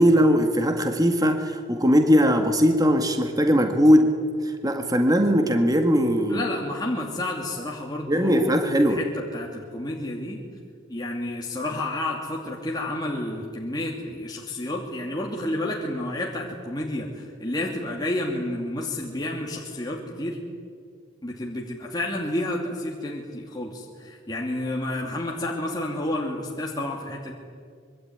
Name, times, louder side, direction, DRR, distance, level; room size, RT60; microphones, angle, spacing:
voice 1, 0.0-4.1 4.4-6.4 8.1-9.0, equal, 20° right, 5 dB, 1.8 m, -20 dB
voice 2, 6.3-10.4 10.9-20.4 21.2-27.3, left 1 dB, 20° left, -2 dB, 2.6 m, -30 dB
25.0 x 23.5 x 9.6 m, 2.1 s
head